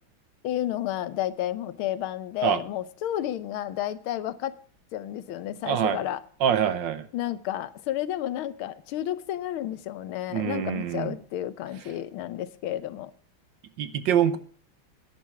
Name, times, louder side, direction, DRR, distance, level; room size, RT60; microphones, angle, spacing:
voice 1, 0.4-4.6 4.9-6.2 7.1-13.1, left 12 dB, 85° left, 15 dB, 1.7 m, -31 dB
voice 2, 5.7-6.0 6.4-7.1 10.3-11.1 13.8-14.4, right 9 dB, 65° right, 13 dB, 1.5 m, -25 dB
10.5 x 10.5 x 5.9 m, 0.44 s
omnidirectional pair, 2.3 m